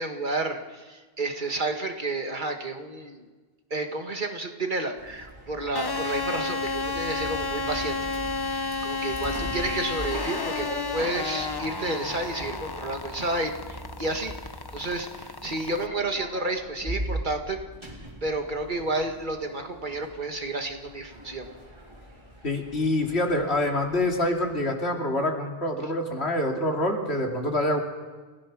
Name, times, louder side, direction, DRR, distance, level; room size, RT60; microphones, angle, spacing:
voice 1, 0.0-3.2 3.7-8.1 8.4-14.3 14.7-17.6 18.2-21.5, right 2 dB, 50° right, 4 dB, 1.9 m, -31 dB
Sliding door, 5.0-24.6, right 1 dB, 25° right, 3.8 m, -41 dB
sound 1, 5.7-15.9, left 3 dB, 25° left, 0.7 m, -32 dB
voice 2, 22.4-27.8, left 1 dB, 85° left, 1 dB, 3.0 m, -26 dB
29.5 x 16.5 x 6.1 m, 1.4 s
omnidirectional pair, 1.1 m